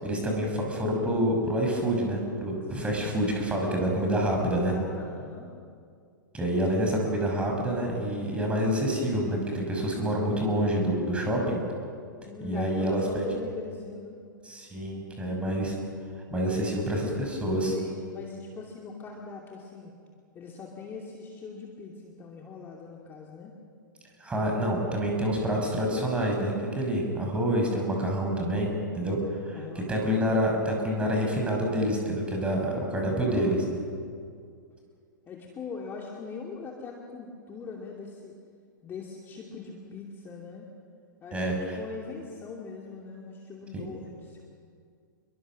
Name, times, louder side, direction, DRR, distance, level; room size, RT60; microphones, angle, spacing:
voice 1, 0.0-4.7 6.3-11.6 12.4-13.2 14.4-15.8 16.3-17.7 24.2-28.7 29.0-29.6 29.9-33.6 41.3-41.8 43.7-43.9, equal, 10° right, 0 dB, 6.3 m, -27 dB
voice 2, 2.7-3.1 4.6-5.5 12.2-14.2 16.4-16.7 17.6-19.9 20.3-23.6 29.5-30.0 32.5-33.8 35.3-38.4 38.8-40.7 41.2-44.5, left 4 dB, 20° left, -1 dB, 2.6 m, -41 dB
28.5 x 22.5 x 6.4 m, 2.2 s
figure-of-eight pair, 105°, 11 cm